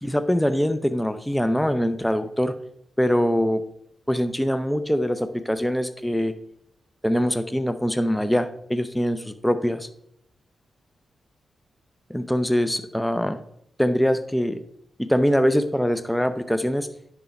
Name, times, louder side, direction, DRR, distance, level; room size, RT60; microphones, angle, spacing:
voice 1, 0.0-2.5 3.0-3.6 4.1-6.3 7.0-9.9 12.1-13.4 13.8-14.6 15.0-16.9, equal, 5° left, 10 dB, 0.6 m, -23 dB
10.0 x 3.5 x 5.2 m, 0.72 s
supercardioid pair, 40°, 0 cm